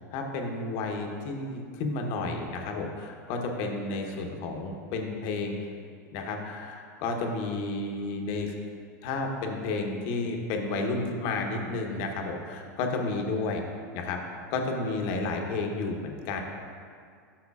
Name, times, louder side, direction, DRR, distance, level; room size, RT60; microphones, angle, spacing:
voice 1, 0.1-5.5 6.1-8.5 9.0-13.6 13.9-16.4, left 3 dB, 50° left, 2 dB, 1.1 m, -31 dB
12.0 x 6.3 x 2.4 m, 2.2 s
hypercardioid pair, 115°, 10 cm